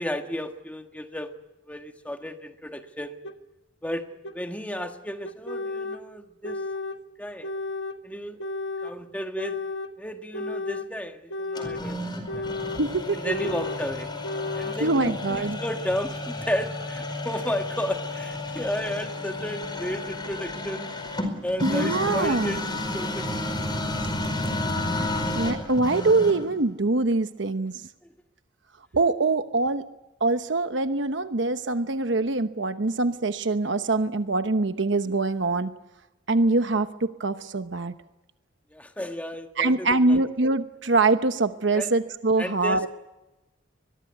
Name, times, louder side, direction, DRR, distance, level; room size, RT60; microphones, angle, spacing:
voice 1, 0.0-1.3 1.7-3.2 3.8-4.1 4.3-6.6 7.2-7.5 8.0-8.4 8.8-9.6 10.0-12.4 13.2-14.1 14.5-15.1 15.6-20.9 21.4-22.6 22.9-23.4 38.7-40.2 41.7-41.9 42.4-42.9, equal, 10° left, 5 dB, 1.5 m, -33 dB
sound 1, 3.2-3.4 4.2-4.4 5.2-6.0 6.4-7.0 7.4-8.0 8.4-9.0 9.4-9.9 10.3-10.9 11.3-11.9 12.3-12.8 13.3-13.8 14.2-14.8, left 2 dB, 75° left, 1.4 m, -33 dB
sound 2, 11.6-26.6, left 2 dB, 25° left, 4.9 m, -32 dB
voice 2, 12.8-13.5 14.8-15.6 21.6-22.6 24.9-27.9 28.9-29.8 30.2-35.7 36.3-38.0 39.6-42.9, right 3 dB, 70° right, 9 dB, 1.0 m, -24 dB
23.5 x 22.0 x 9.5 m, 0.99 s
head